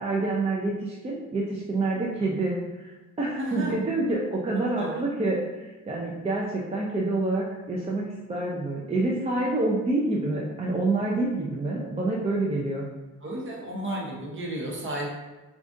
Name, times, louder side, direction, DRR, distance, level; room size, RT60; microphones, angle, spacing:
voice 1, 0.0-12.9, right 2 dB, 20° right, -4 dB, 0.5 m, -27 dB
voice 2, 3.3-3.7 4.8-5.0 13.2-15.2, right 1 dB, 40° right, -2 dB, 1.0 m, -33 dB
4.7 x 2.4 x 2.6 m, 1.1 s
cardioid pair, 90°, 30 cm